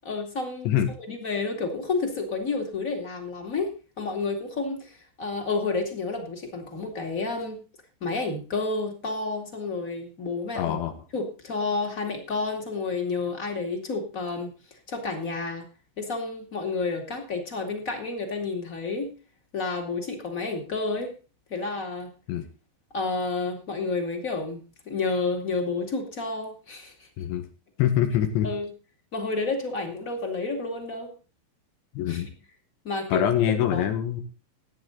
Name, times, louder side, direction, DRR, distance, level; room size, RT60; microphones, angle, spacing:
voice 1, 0.0-0.7 1.1-7.6 8.0-10.8 11.1-14.5 14.9-15.7 16.0-19.1 19.5-21.1 21.5-22.1 22.9-27.1 28.4-28.7 29.1-31.1 32.1-32.2 32.8-33.2 33.7-33.8, left 3 dB, 25° left, 2 dB, 1.9 m, -30 dB
voice 2, 10.6-10.9 22.3-22.5 27.2-27.5 27.8-28.5 31.9-32.3 33.1-34.2, left 10 dB, 90° left, 5 dB, 4.0 m, -24 dB
16.0 x 9.5 x 3.9 m, 0.34 s
omnidirectional pair, 5.1 m